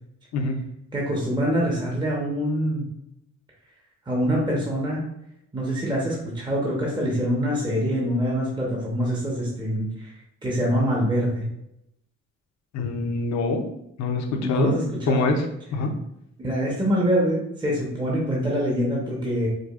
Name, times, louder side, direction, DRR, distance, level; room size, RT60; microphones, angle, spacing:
voice 1, 0.9-2.9 4.1-5.0 5.5-10.1 10.4-11.4 14.4-15.2 16.4-19.5, equal, 15° right, -4 dB, 0.9 m, -25 dB
voice 2, 12.7-13.6 14.0-14.8 15.1-15.4 15.7-15.9, left 3 dB, 65° left, 3 dB, 0.7 m, -24 dB
4.9 x 2.3 x 2.4 m, 0.81 s
cardioid pair, 90°, 30 cm